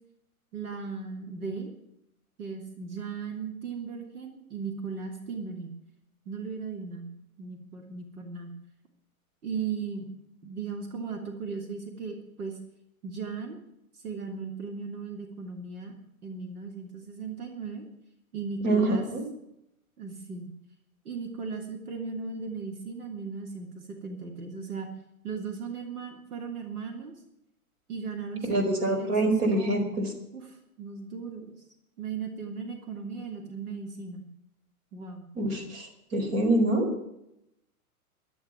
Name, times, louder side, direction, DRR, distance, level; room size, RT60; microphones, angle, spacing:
voice 1, 0.5-1.7 2.4-5.7 6.2-7.1 7.4-8.5 9.4-10.1 10.4-12.6 13.0-13.6 13.9-15.9 16.2-17.8 18.3-19.1 20.0-20.5 21.0-24.9 25.2-27.1 27.9-29.9 30.3-31.6 32.0-34.3 34.9-35.3, right 5 dB, 80° right, 3 dB, 3.1 m, -37 dB
voice 2, 18.6-19.2 28.5-30.1 35.3-36.9, right 2 dB, 40° right, 5 dB, 4.5 m, -25 dB
12.0 x 11.0 x 9.7 m, 0.82 s
hypercardioid pair, 140°, 44 cm